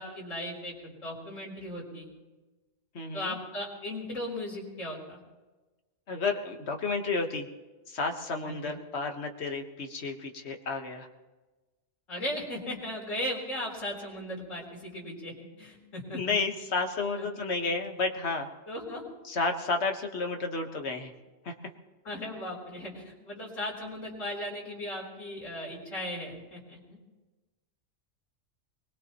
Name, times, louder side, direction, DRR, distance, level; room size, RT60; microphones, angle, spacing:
voice 1, 0.0-2.1 3.1-5.2 8.4-8.8 12.1-16.4 17.1-17.3 18.7-19.0 22.0-27.0, left 1 dB, 75° left, -2 dB, 4.2 m, -37 dB
voice 2, 2.9-3.4 6.1-7.5 7.9-11.1 16.1-18.5 19.2-21.1 21.4-21.5, left 3 dB, 55° left, 4 dB, 1.6 m, -31 dB
23.5 x 20.5 x 3.0 m, 1.2 s
omnidirectional pair, 1.3 m